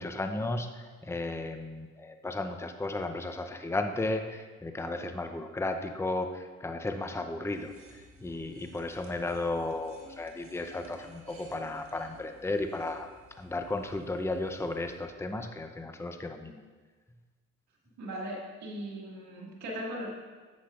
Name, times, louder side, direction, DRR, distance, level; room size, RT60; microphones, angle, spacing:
voice 1, 0.0-7.7 8.2-13.1 13.4-16.6, left 2 dB, 10° left, 6 dB, 0.6 m, -34 dB
sound 1, 7.5-15.0, equal, 45° right, 1.8 m, -55 dB
voice 2, 18.0-20.1, equal, 70° right, -3 dB, 2.0 m, -38 dB
10.0 x 8.1 x 2.5 m, 1.4 s
supercardioid pair, 60°, 29 cm